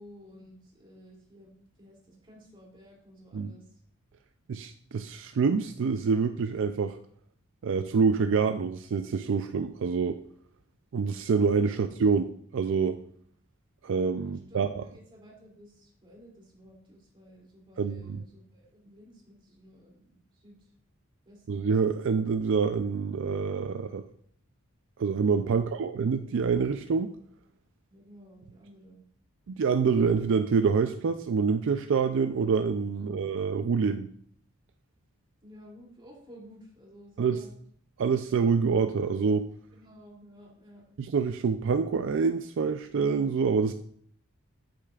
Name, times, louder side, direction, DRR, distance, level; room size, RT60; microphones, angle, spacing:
voice 1, 0.0-3.8 14.2-20.7 21.2-21.6 25.5-25.9 27.9-29.0 32.9-33.2 35.4-37.6 39.7-41.0, equal, 25° right, -3 dB, 2.7 m, -53 dB
voice 2, 4.5-7.0 7.6-10.2 10.9-13.0 13.8-14.8 17.8-18.2 21.5-24.0 25.0-27.1 29.5-34.1 37.2-37.4 38.0-39.5 41.0-43.7, right 5 dB, 60° right, 8 dB, 0.4 m, -26 dB
8.8 x 8.2 x 2.4 m, 0.62 s
head